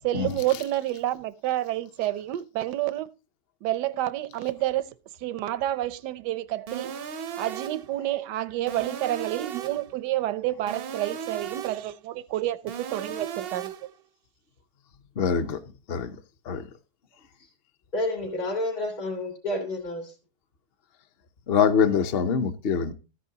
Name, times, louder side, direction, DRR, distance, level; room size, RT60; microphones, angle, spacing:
voice 1, 0.0-3.1 3.6-4.9 5.2-6.9 7.4-13.7, right 14 dB, 90° right, 1.3 m, -29 dB
sound 1, 6.7-7.9 8.7-9.9 10.7-11.9 12.7-13.9, right 8 dB, 65° right, 0.6 m, -36 dB
voice 2, 15.2-15.6 15.9-16.1 16.5-16.6 21.5-22.9, left 6 dB, 50° left, 0.8 m, -24 dB
voice 3, 17.9-20.1, left 1 dB, 65° left, 3.5 m, -30 dB
13.5 x 9.9 x 2.7 m
omnidirectional pair, 1.8 m